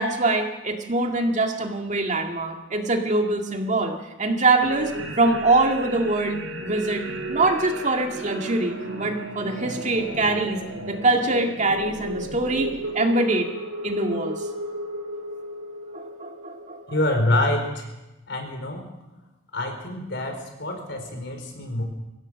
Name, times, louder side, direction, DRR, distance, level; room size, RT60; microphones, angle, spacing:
voice 1, 0.0-4.9 5.2-7.0 7.3-10.6 10.9-12.7 12.9-13.5 13.8-14.5 15.9-17.0, right 2 dB, 40° right, 3 dB, 2.2 m, -23 dB
sound 1, 4.6-17.3, right 1 dB, 85° right, 5.2 m, -34 dB
voice 2, 16.9-17.9 18.3-18.9 19.5-21.8, left 1 dB, 60° left, 4 dB, 4.6 m, -26 dB
24.0 x 16.5 x 6.4 m, 1.0 s
head